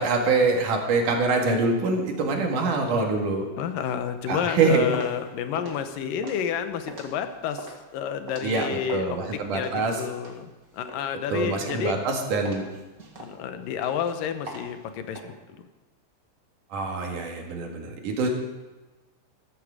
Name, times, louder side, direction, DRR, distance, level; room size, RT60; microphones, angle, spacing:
voice 1, 0.0-3.5 4.3-4.8 8.4-9.9 11.3-12.6 16.7-18.3, right 3 dB, 70° right, 2 dB, 3.4 m, -24 dB
voice 2, 3.6-12.0 13.2-15.3, left 8 dB, 85° left, 8 dB, 2.7 m, -30 dB
sound 1, 4.0-9.2 9.5-11.4 11.7-12.1 12.4-15.2, right 2 dB, 35° right, 1.8 m, -42 dB
14.0 x 13.5 x 4.9 m, 1.2 s
omnidirectional pair, 3.8 m